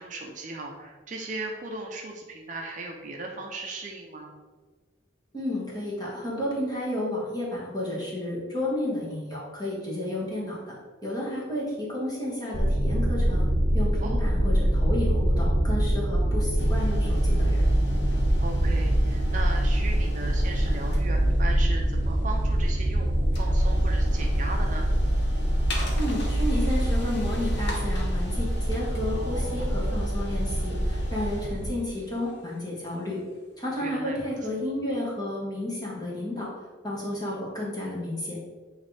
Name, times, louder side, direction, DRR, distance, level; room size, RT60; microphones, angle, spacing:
voice 1, 0.0-4.3 14.0-14.2 18.4-24.9 29.2-29.7 33.7-34.2, right 2 dB, 40° right, 1 dB, 0.6 m, -37 dB
voice 2, 5.3-10.7 11.0-13.5 13.7-17.6 25.9-33.2 33.6-36.5 36.8-38.4, left 1 dB, 20° left, -5 dB, 1.6 m, -32 dB
sound 1, 12.5-31.7, right 1 dB, 65° right, 0.8 m, -24 dB
sound 2, 16.6-33.4, left 1 dB, 60° left, 1.1 m, -43 dB
8.7 x 3.3 x 3.4 m, 1.4 s
head